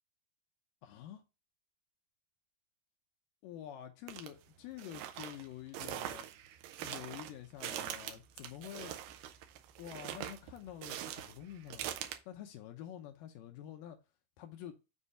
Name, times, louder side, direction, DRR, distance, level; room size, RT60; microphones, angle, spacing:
voice 1, 0.8-1.2 3.4-6.3 6.8-9.0 9.8-11.9 12.3-14.0 14.4-14.7, left 11 dB, 80° left, 2.0 m, -48 dB
sound 1, 4.1-4.3 4.8-12.2, right 11 dB, 80° right, 2.0 m, -43 dB
7.2 x 2.7 x 5.4 m
omnidirectional pair, 4.6 m